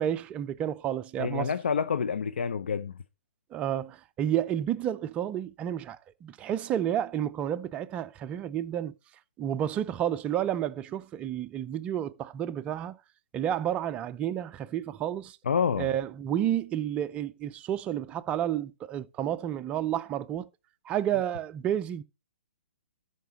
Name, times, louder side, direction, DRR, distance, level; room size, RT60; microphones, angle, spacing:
voice 1, 0.0-1.5 3.5-8.9 9.4-13.0 13.3-15.4 15.8-20.5 20.8-22.0, right 10 dB, 20° right, 0.5 m, -30 dB
voice 2, 1.2-2.9 15.5-15.9, left 6 dB, 75° left, 0.6 m, -28 dB
12.5 x 5.8 x 4.1 m
hypercardioid pair, 140°, 6 cm